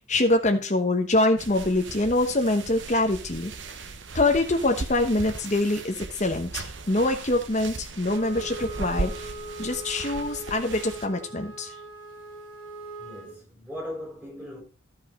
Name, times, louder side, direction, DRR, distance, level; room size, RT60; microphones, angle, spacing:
voice 1, 0.0-3.5 4.1-9.1 9.6-11.7, left 2 dB, 35° left, 1.0 m, -24 dB
sound 1, 1.4-11.1, right 3 dB, 60° right, 0.8 m, -38 dB
Wind instrument woodwind instrument, 8.0-13.3, right 1 dB, 10° left, 4.0 m, -40 dB
voice 2, 13.0-14.6, left 1 dB, 5° right, 5.5 m, -38 dB
12.0 x 5.5 x 4.1 m
head